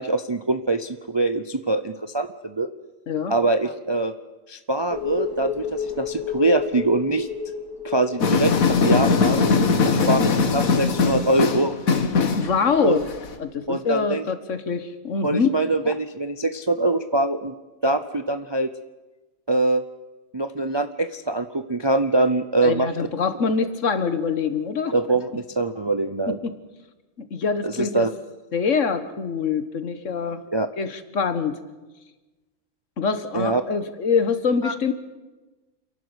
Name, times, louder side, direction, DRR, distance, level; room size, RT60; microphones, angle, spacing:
voice 1, 0.0-2.7 3.3-4.1 4.5-7.3 7.8-9.4 10.1-11.8 12.8-13.0 13.7-14.2 15.2-17.5 17.8-18.7 19.5-19.8 20.3-22.9 24.9-26.4 27.6-28.1 30.5-30.7 33.3-33.6 34.6-34.7, right 2 dB, 30° right, 10 dB, 0.5 m, -23 dB
sound 1, 4.9-10.1 10.4-10.5, left 7 dB, 10° left, 4.3 m, -32 dB
sound 2, 8.2-13.3, left 4 dB, 75° left, 1.8 m, -20 dB
voice 2, 9.8-10.2 12.4-13.0 13.4-15.5 22.6-24.9 26.3-26.5 27.3-28.1 28.5-30.4 30.8-31.6 33.0-34.9, left 5 dB, 60° left, 11 dB, 1.6 m, -24 dB
28.5 x 11.5 x 8.1 m, 1.2 s
omnidirectional pair, 1.5 m